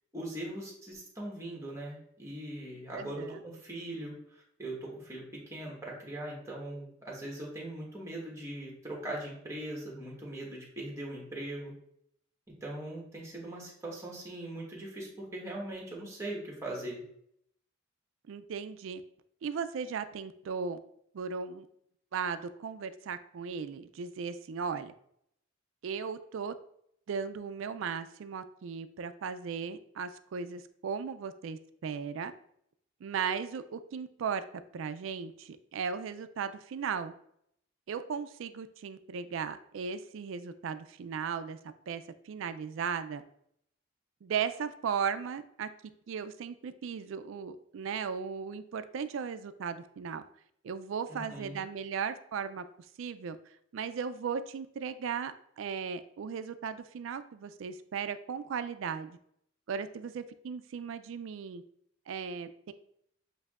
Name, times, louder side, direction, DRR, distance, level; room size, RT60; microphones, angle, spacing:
voice 1, 0.1-11.7 12.6-17.0 51.1-51.6, right 1 dB, 15° right, -3 dB, 1.2 m, -40 dB
voice 2, 2.9-3.4 18.3-19.0 19.4-20.8 21.1-21.7 22.1-24.9 25.8-26.5 27.1-32.3 33.0-34.4 34.7-37.1 37.9-41.6 41.9-43.2 44.2-45.7 46.1-50.2 50.6-52.6 53.0-53.4 53.7-59.2 59.7-61.6 62.1-62.7, right 6 dB, 70° right, 12 dB, 0.3 m, -36 dB
7.8 x 2.6 x 2.4 m, 0.71 s
head